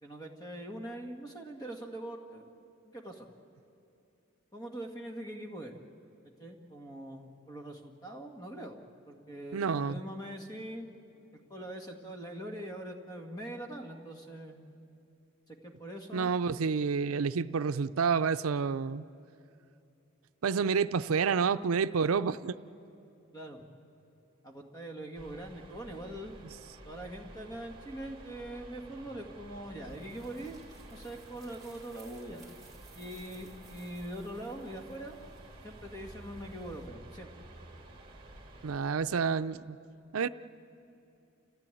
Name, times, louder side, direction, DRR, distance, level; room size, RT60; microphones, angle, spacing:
voice 1, 0.0-2.5 2.8-3.3 4.5-5.8 6.2-10.9 11.5-14.6 15.5-16.3 23.3-23.7 24.4-26.4 26.8-30.6 30.9-32.5 32.9-35.2 35.6-37.3, right 1 dB, 20° left, 3 dB, 1.8 m, -43 dB
voice 2, 9.5-9.9 16.1-19.0 20.4-22.6 38.6-39.8 40.1-40.3, right 5 dB, 85° right, 13 dB, 0.5 m, -29 dB
sound 1, 25.1-38.8, right 1 dB, 25° right, 2.5 m, -52 dB
sound 2, 29.5-36.9, right 2 dB, ahead, 3.7 m, -58 dB
29.5 x 14.5 x 9.1 m, 2.7 s
head